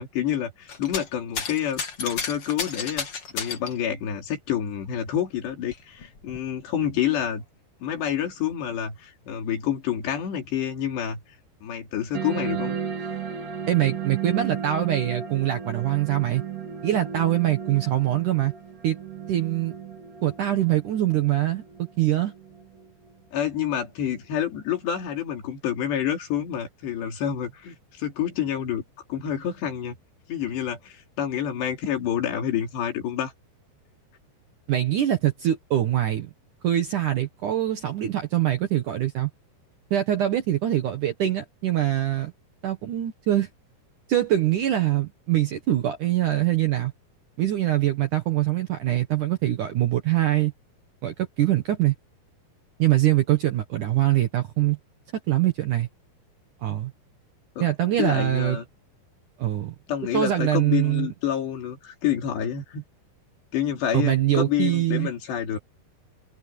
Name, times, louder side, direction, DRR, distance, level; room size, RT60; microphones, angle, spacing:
voice 1, 0.0-3.1 3.3-7.4 7.8-11.2 11.6-12.8 23.3-28.8 29.1-30.0 30.3-33.3 57.6-57.7 58.0-58.7 59.9-62.8 63.5-65.6, left 9 dB, 70° left, 5.1 m, -28 dB
sound 1, 0.7-1.1 1.3-3.8 4.8-4.9 5.4-6.4 7.3-7.4, left 5 dB, 40° left, 2.4 m, -32 dB
sound 2, 12.1-23.1, right 7 dB, 50° right, 4.0 m, -35 dB
voice 2, 13.7-16.4 16.8-18.5 18.8-19.0 19.3-19.7 20.2-22.3 34.7-36.3 36.6-39.3 39.9-42.3 42.6-43.5 44.1-46.9 47.4-50.5 51.0-51.9 52.8-54.8 55.3-55.9 56.6-56.9 57.6-58.6 59.4-59.7 60.1-61.1 63.9-65.1, right 13 dB, 65° right, 2.1 m, -23 dB
omnidirectional pair, 5.2 m